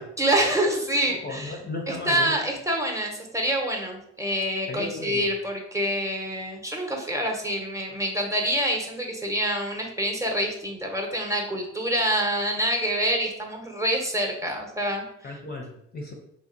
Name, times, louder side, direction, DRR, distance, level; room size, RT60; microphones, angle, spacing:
voice 1, 0.2-1.6 1.9-15.0, right 1 dB, 10° right, 1 dB, 0.8 m, -26 dB
voice 2, 1.1-2.4 4.7-5.2 15.2-16.1, left 2 dB, 25° left, 0 dB, 0.6 m, -35 dB
3.4 x 2.6 x 2.5 m, 0.73 s
hypercardioid pair, 60°, 36 cm